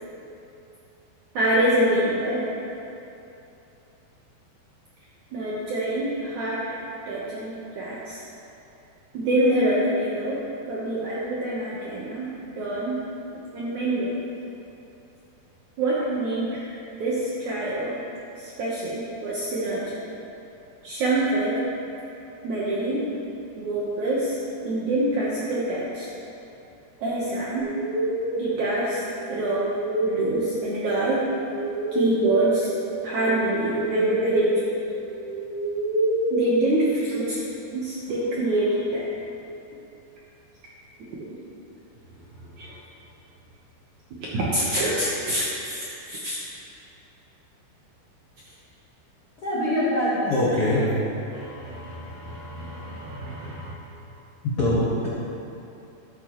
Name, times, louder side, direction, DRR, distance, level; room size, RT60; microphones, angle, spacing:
voice 1, 1.3-2.4 5.3-6.6 7.1-8.2 9.1-13.0 13.5-14.2 15.8-16.5 17.0-17.9 18.4-20.0 20.8-21.6 22.4-23.1 23.6-24.4 24.6-26.1 27.0-27.7 28.4-29.7 30.0-31.3 31.9-32.7 33.0-34.6 36.3-37.4 37.7-39.1 42.6-42.7 44.3-46.4 51.3-53.7, right 1 dB, 70° right, -7 dB, 1.8 m, -26 dB
sound 1, 27.6-37.3, right 1 dB, 55° right, 2.8 m, -28 dB
voice 2, 49.4-50.9 54.6-55.1, left 1 dB, 85° left, -8 dB, 1.2 m, -23 dB
13.5 x 10.5 x 3.1 m, 2.8 s
omnidirectional pair, 5.1 m